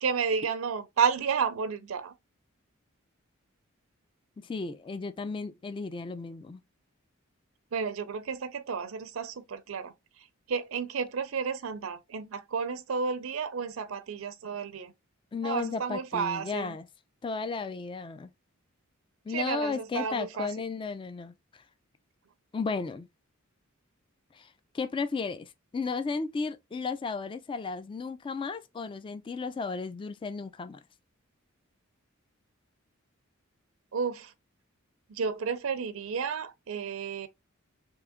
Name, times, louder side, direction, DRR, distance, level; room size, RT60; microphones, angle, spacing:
voice 1, 0.0-2.1 7.7-9.9 10.5-14.9 15.4-16.8 19.3-20.5 33.9-34.3 35.1-37.3, right 6 dB, 80° right, 0.5 m, -31 dB
voice 2, 4.4-6.6 15.3-16.9 17.2-18.3 19.3-21.6 22.5-23.1 24.3-30.8, left 4 dB, 25° left, 0.3 m, -34 dB
3.6 x 2.8 x 3.5 m
head